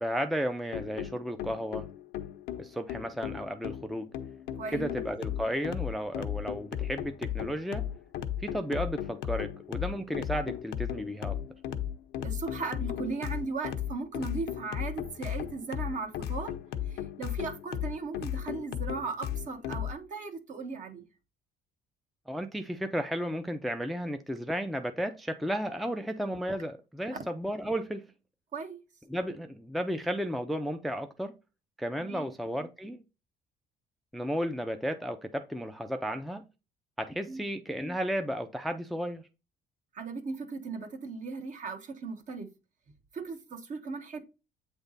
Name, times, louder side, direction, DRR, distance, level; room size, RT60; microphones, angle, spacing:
voice 1, 0.0-1.9 2.6-4.1 4.7-7.9 8.4-11.4 22.3-28.0 29.1-31.3 31.8-33.0 34.1-36.4 37.0-39.2, equal, ahead, 0.5 m, -33 dB
sound 1, 0.7-19.9, left 10 dB, 80° left, 0.7 m, -36 dB
voice 2, 4.6-4.9 12.2-16.5 16.9-21.0 27.1-27.2 28.5-28.8 32.0-32.3 37.3-37.4 39.9-42.5 43.1-44.2, right 4 dB, 45° right, 1.3 m, -37 dB
8.0 x 3.5 x 4.0 m
cardioid pair, 110°, 17 cm